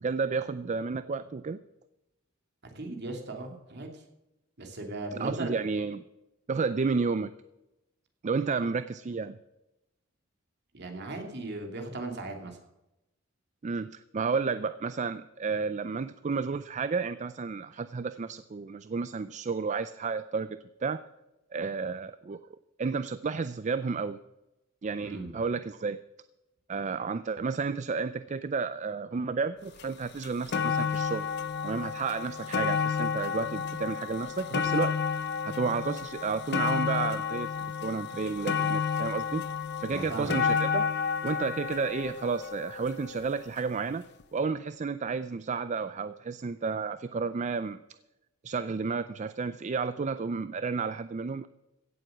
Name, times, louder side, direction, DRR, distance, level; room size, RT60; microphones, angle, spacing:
voice 1, 0.0-1.6 5.2-6.0 6.5-7.3 8.2-9.4 13.6-21.0 21.5-22.4 22.8-24.2 24.8-26.0 26.7-31.3 31.6-34.9 35.4-37.5 37.8-39.5 39.8-40.9 41.2-44.0 44.3-47.8 48.4-51.5, right 4 dB, 35° right, 13 dB, 0.4 m, -31 dB
voice 2, 2.7-4.0 4.6-5.5 8.4-8.7 10.7-12.6 25.0-25.3 39.9-40.4, right 2 dB, 55° right, 3 dB, 2.6 m, -37 dB
sound 1, 29.8-29.9 30.2-43.4 44.2-44.3, left 6 dB, 55° left, 0.6 m, -31 dB
16.5 x 7.7 x 7.8 m, 0.94 s
head